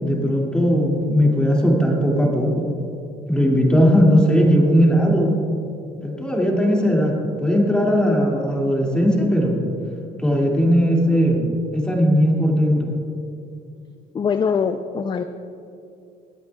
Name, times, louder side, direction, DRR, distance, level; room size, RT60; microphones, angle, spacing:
voice 1, 0.0-2.7 3.3-5.3 6.0-9.6 10.2-11.4 11.7-12.9, equal, 5° left, -2 dB, 2.2 m, -18 dB
voice 2, 14.1-15.2, left 6 dB, 25° left, 9 dB, 0.4 m, -22 dB
23.5 x 8.3 x 2.3 m, 2.6 s
cardioid pair, 110°, 17 cm